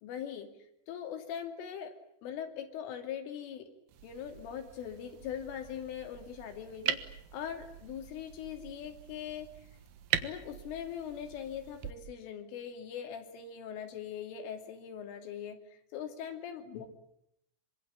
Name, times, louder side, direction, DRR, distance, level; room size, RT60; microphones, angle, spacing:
voice 1, 0.0-0.5 0.9-1.9 2.2-3.7 4.0-7.0 7.3-9.5 10.2-16.9, left 8 dB, 70° left, 6 dB, 5.0 m, -41 dB
sound 1, 3.9-11.9, right 11 dB, 65° right, 2.8 m, -41 dB
26.5 x 25.0 x 8.6 m, 0.75 s
omnidirectional pair, 5.9 m